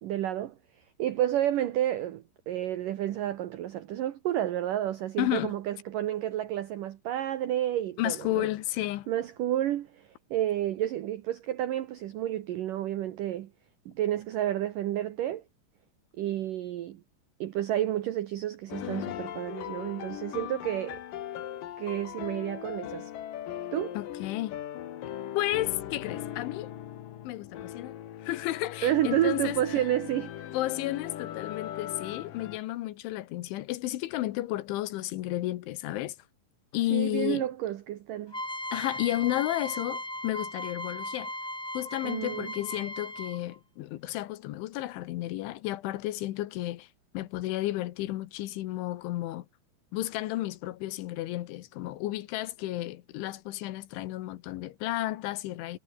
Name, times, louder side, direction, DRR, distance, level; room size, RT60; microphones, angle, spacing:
voice 1, 0.0-0.6 1.0-8.5 9.1-13.5 13.9-15.4 16.2-17.0 17.4-21.0 21.8-23.1 23.7-24.0 28.8-30.5 36.9-38.4 42.0-42.5, right 12 dB, 85° right, 1.9 m, -30 dB
voice 2, 5.2-5.5 8.0-9.1 24.0-24.6 25.4-26.7 27.3-29.6 30.5-36.2 36.7-37.5 38.7-41.3 41.8-46.9 47.1-49.5 49.9-55.8, left 16 dB, 80° left, 3.6 m, -32 dB
sound 1, 18.7-32.6, left 11 dB, 60° left, 2.7 m, -39 dB
sound 2, 38.3-43.6, left 1 dB, 5° left, 2.0 m, -37 dB
omnidirectional pair, 5.5 m